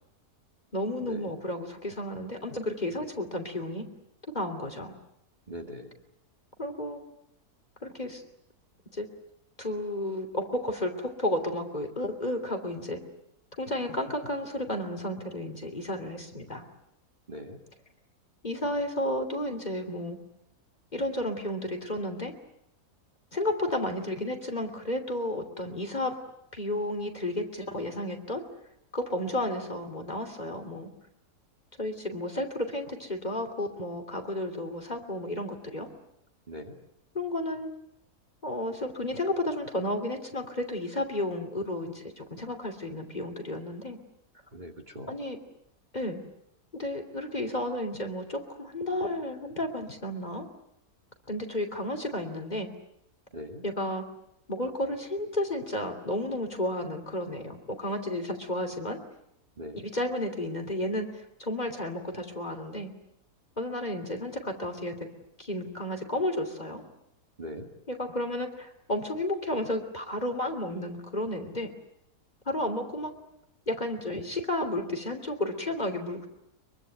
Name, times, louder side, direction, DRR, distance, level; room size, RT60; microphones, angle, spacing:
voice 1, 0.7-3.9 4.3-4.9 6.6-7.0 7.8-8.2 8.9-9.1 9.6-13.0 13.6-16.6 18.4-20.2 20.9-22.3 23.3-26.2 26.5-28.4 28.9-30.9 31.8-35.9 37.1-37.7 38.4-44.0 45.1-45.4 45.9-46.2 46.7-50.5 51.3-52.7 53.6-54.0 54.5-59.0 59.8-62.9 63.6-65.1 65.4-66.8 67.9-71.7 72.5-73.1 73.7-76.3, left 1 dB, 25° left, 4 dB, 3.1 m, -32 dB
voice 2, 5.5-5.9 17.3-17.6 36.5-36.8 44.5-45.2 53.3-53.6 59.6-59.9 67.4-67.7, equal, 30° right, 3 dB, 2.2 m, -41 dB
24.5 x 23.5 x 9.2 m, 0.78 s
omnidirectional pair, 1.7 m